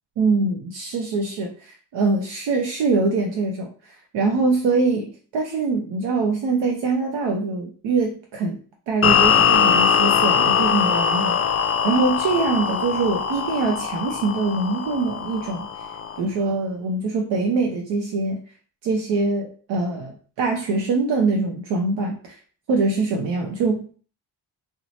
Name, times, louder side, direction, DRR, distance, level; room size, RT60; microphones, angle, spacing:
voice 1, 0.2-8.6 8.9-11.4 11.8-15.7 16.2-18.4 18.8-22.4 22.7-23.9, right 3 dB, 70° right, 1 dB, 0.7 m, -23 dB
sound 1, 9.0-16.2, left 7 dB, 30° left, 0.4 m, -21 dB
2.8 x 2.1 x 2.8 m, 0.41 s
supercardioid pair, 45°, 46 cm